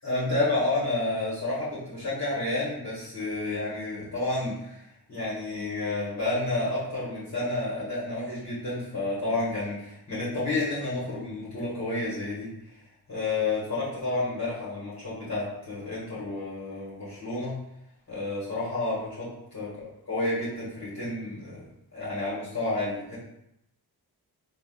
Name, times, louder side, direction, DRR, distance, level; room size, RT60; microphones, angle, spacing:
voice 1, 0.0-4.8 5.1-12.5 13.1-17.6 18.1-21.6 21.9-23.2, left 2 dB, 40° left, -9 dB, 1.5 m, -30 dB
3.3 x 2.5 x 2.3 m, 0.78 s
cardioid pair, 60°, 40 cm